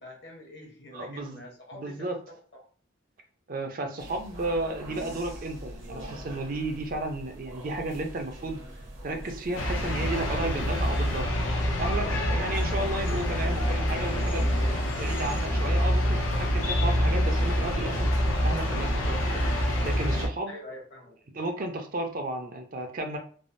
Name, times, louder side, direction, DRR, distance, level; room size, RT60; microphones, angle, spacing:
voice 1, 0.0-2.6 11.9-12.2 20.5-21.1, left 1 dB, 60° left, 0 dB, 0.9 m, -45 dB
voice 2, 0.9-1.4 1.7-2.2 3.5-8.6 9.0-11.3 11.8-18.1 18.4-20.5 21.3-23.2, right 2 dB, 45° right, 4 dB, 0.5 m, -33 dB
sound 1, 4.0-11.2, equal, 70° right, 0.9 m, -43 dB
sound 2, 9.6-20.3, equal, 85° left, 0.6 m, -26 dB
3.3 x 2.0 x 2.5 m, 0.43 s
head